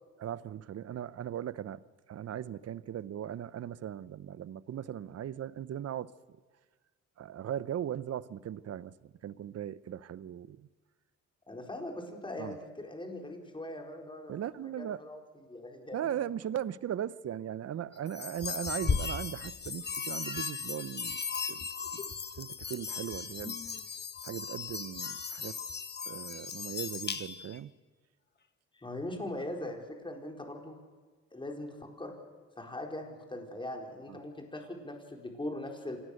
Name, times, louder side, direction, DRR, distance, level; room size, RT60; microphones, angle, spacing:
voice 1, 0.2-1.8 2.1-6.1 7.2-10.7 12.4-12.6 14.3-15.0 15.9-21.2 21.5-22.0 22.4-23.6 24.2-25.6 26.1-27.7 34.1-34.2, right 10 dB, 55° right, 0.9 m, -38 dB
voice 2, 11.5-14.3 14.8-15.2 15.5-16.0 28.7-30.8 31.3-32.2 32.6-36.0, left 1 dB, 15° left, 4.6 m, -40 dB
sound 1, 18.1-27.6, left 5 dB, 35° left, 1.6 m, -37 dB
26.5 x 19.0 x 6.7 m
cardioid pair, 90°, 30 cm